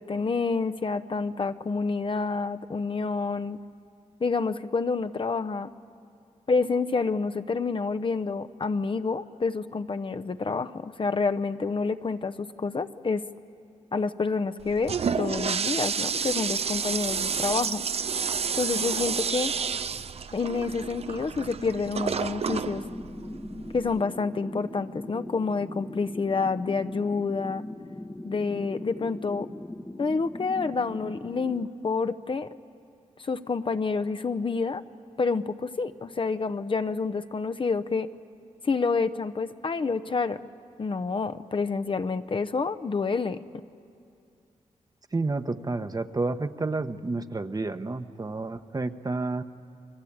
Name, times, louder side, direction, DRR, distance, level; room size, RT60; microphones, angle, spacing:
voice 1, 0.0-3.6 4.2-5.7 6.5-13.2 13.9-17.8 18.5-19.5 20.3-22.8 23.7-27.6 28.2-29.5 30.0-32.5 33.2-34.8 35.2-38.1 38.6-40.4 40.8-43.4, left 4 dB, 40° left, 10 dB, 0.8 m, -28 dB
Toilet flush, 14.6-24.0, right 6 dB, 50° right, 0.6 m, -30 dB
sound 1, 22.4-31.7, left 1 dB, 15° left, 0.9 m, -40 dB
voice 2, 45.1-49.4, right 3 dB, 30° right, 9 dB, 1.1 m, -30 dB
29.0 x 22.5 x 8.7 m, 2.4 s
cardioid pair, 65°, 13 cm